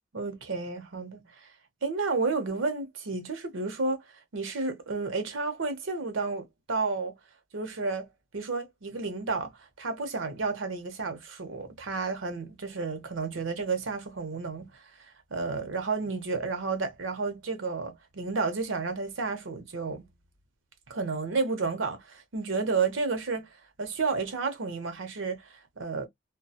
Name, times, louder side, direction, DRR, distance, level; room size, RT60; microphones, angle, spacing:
voice 1, 0.1-1.5 1.8-4.1 4.3-7.1 7.5-8.1 8.3-20.1 20.9-23.5 23.8-26.1, right 4 dB, 90° right, 0.7 m, -31 dB
2.3 x 2.2 x 2.6 m
head